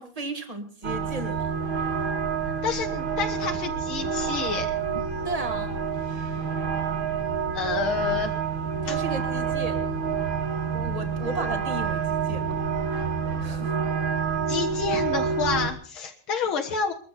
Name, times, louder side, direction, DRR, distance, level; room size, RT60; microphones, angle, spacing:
voice 1, 0.0-1.5 5.2-5.8 8.8-9.8 10.7-12.6 13.4-13.8, right 2 dB, 20° right, 7 dB, 1.7 m, -34 dB
sound 1, 0.8-15.7, right 6 dB, 65° right, 2.3 m, -28 dB
voice 2, 2.6-5.0 7.5-8.3 8.9-9.0 14.5-16.9, left 6 dB, 75° left, 3 dB, 2.2 m, -29 dB
22.0 x 14.0 x 4.2 m, 0.42 s
omnidirectional pair, 2.3 m